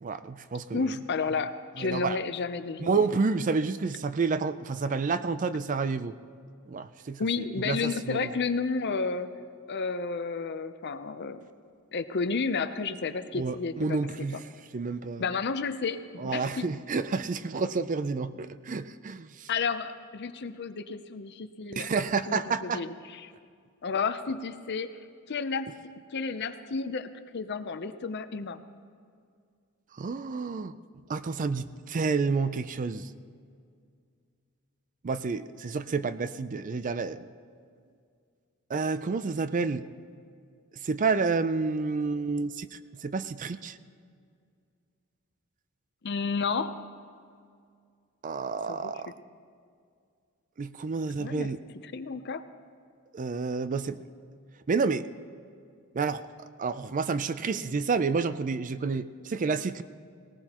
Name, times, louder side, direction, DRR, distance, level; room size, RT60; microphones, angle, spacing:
voice 1, 0.0-0.9 1.8-2.2 2.8-6.1 6.7-8.3 13.3-14.4 14.7-15.3 16.2-19.5 21.8-22.8 30.0-30.7 31.1-33.1 35.0-37.3 38.7-39.9 40.8-43.8 48.2-49.1 50.6-51.6 53.1-54.0 54.7-55.1 55.9-59.8, right 4 dB, 35° right, 13 dB, 0.4 m, -29 dB
voice 2, 0.7-3.0 7.2-9.3 9.7-11.4 11.9-14.0 14.3-14.4 15.2-16.7 19.5-23.3 23.8-24.9 25.3-25.7 26.1-28.6 46.0-46.7 48.7-48.8 51.2-51.5 51.8-52.4, left 4 dB, 55° left, 11 dB, 0.6 m, -31 dB
18.5 x 18.5 x 3.0 m, 2.2 s
head